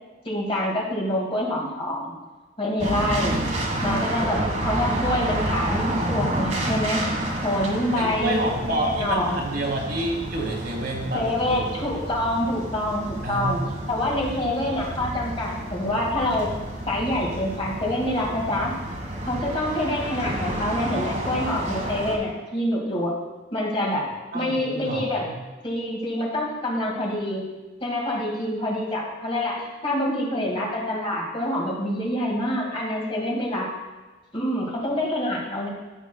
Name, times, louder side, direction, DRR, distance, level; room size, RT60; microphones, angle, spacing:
voice 1, 0.3-2.1 2.6-3.4 3.8-7.0 7.4-9.4 11.1-13.6 13.9-16.5 16.9-18.7 19.3-23.1 23.5-24.0 24.3-25.3 25.6-27.4 27.8-33.7 34.3-35.7, left 1 dB, 30° left, -2 dB, 2.0 m, -26 dB
sound 1, 2.8-22.2, right 1 dB, 35° right, 1.5 m, -30 dB
voice 2, 7.9-11.7 13.2-14.0 24.3-25.4, right 1 dB, 50° right, -1 dB, 2.0 m, -29 dB
14.5 x 7.3 x 2.3 m, 1.2 s
head